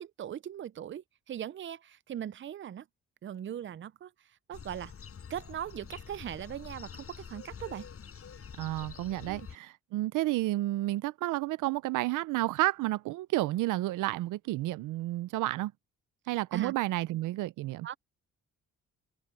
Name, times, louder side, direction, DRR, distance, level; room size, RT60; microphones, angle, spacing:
voice 1, 0.0-2.9 3.2-4.1 4.5-4.9 5.3-7.9 9.3-9.5 16.5-16.7 17.8-18.0, right 10 dB, 40° right, 0.6 m, -39 dB
sound 1, 4.5-9.6, left 7 dB, 50° left, 7.1 m, -47 dB
voice 2, 8.6-15.7 16.3-17.9, right 17 dB, 90° right, 0.7 m, -31 dB
cardioid pair, 90°, 30 cm